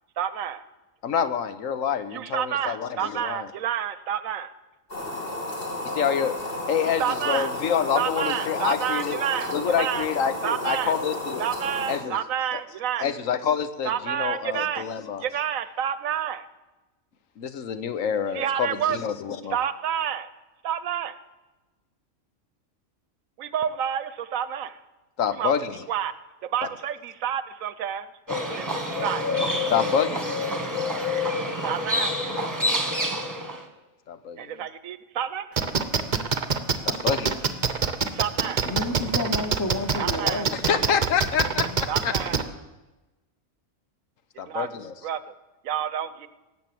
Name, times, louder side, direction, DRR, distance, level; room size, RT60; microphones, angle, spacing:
voice 1, 0.2-0.6 2.1-4.5 6.9-7.5 7.9-10.1 10.4-10.9 11.4-13.1 13.8-14.9 15.2-16.5 18.3-19.0 19.5-20.3 20.6-21.1 23.4-24.8 25.4-25.6 25.9-26.1 26.4-28.1 28.5-29.3 31.6-32.1 34.4-35.5 38.1-38.6 40.0-40.4 41.9-42.4 44.3-44.7 45.0-45.3 45.6-46.3, right 9 dB, 80° right, 1.2 m, -29 dB
voice 2, 1.0-3.5 5.8-6.3 6.7-9.2 9.5-11.4 11.9-12.2 12.5-12.6 13.0-15.2 17.4-19.6 25.2-25.8 29.7-30.4 34.1-34.6 36.8-37.5 40.7-42.1 44.4-44.9, left 7 dB, 75° left, 1.3 m, -27 dB
sound 1, 4.9-12.0, left 2 dB, 45° left, 3.2 m, -32 dB
Livestock farm animals working animals, 28.3-33.6, left 2 dB, 15° right, 1.3 m, -27 dB
sound 2, 35.6-42.4, right 5 dB, 40° right, 0.9 m, -24 dB
voice 3, 38.6-41.0, left 2 dB, 15° left, 1.0 m, -30 dB
18.0 x 7.6 x 7.7 m
omnidirectional pair, 1.4 m